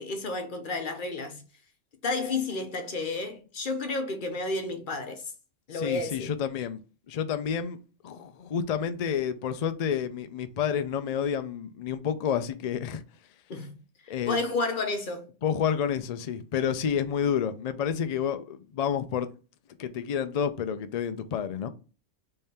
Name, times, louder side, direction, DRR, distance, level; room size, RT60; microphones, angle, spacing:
voice 1, 0.0-1.4 2.0-5.2 5.7-6.3 13.5-13.8 14.3-15.3, left 3 dB, 45° left, 0.9 m, -31 dB
voice 2, 5.7-6.8 7.1-7.8 8.0-13.0 14.1-14.4 15.4-19.3 19.8-21.7, left 8 dB, 70° left, 0.3 m, -29 dB
3.6 x 3.3 x 4.2 m
omnidirectional pair, 1.3 m